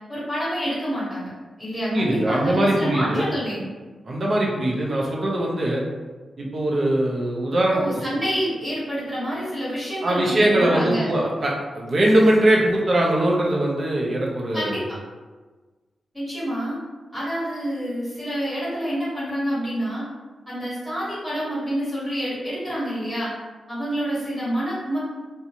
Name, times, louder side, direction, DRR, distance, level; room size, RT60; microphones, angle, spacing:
voice 1, 0.1-1.3 1.6-3.7 7.7-11.1 14.5-14.8 16.1-16.8 17.1-20.0 20.5-23.3 23.7-25.0, equal, 10° right, -10 dB, 1.5 m, -27 dB
voice 2, 1.9-3.3 4.1-5.8 6.4-7.8 8.1-8.2 10.0-14.8, right 1 dB, 50° right, -2 dB, 0.6 m, -21 dB
2.5 x 2.2 x 2.8 m, 1.3 s
cardioid pair, 80°, 0 cm